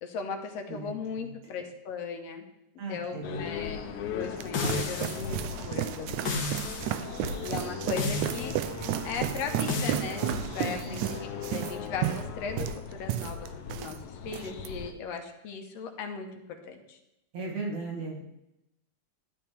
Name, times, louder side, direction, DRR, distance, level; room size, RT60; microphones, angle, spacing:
voice 1, 0.0-2.4 2.9-6.4 7.4-11.1 11.4-16.3 16.6-17.0, left 5 dB, 65° left, 4 dB, 2.1 m, -38 dB
voice 2, 0.7-1.3 2.8-3.5 10.6-10.9 17.3-18.2, right 3 dB, 65° right, -1 dB, 3.3 m, -37 dB
sound 1, 3.2-14.9, left 7 dB, 80° left, 2.2 m, -38 dB
sound 2, 4.0-14.0 14.3-14.7, right 13 dB, 80° right, 1.9 m, -33 dB
sound 3, 4.5-5.3 6.2-7.0 8.0-8.5 9.7-10.0, left 2 dB, 50° left, 1.7 m, -32 dB
11.5 x 11.5 x 3.5 m, 0.89 s
omnidirectional pair, 3.5 m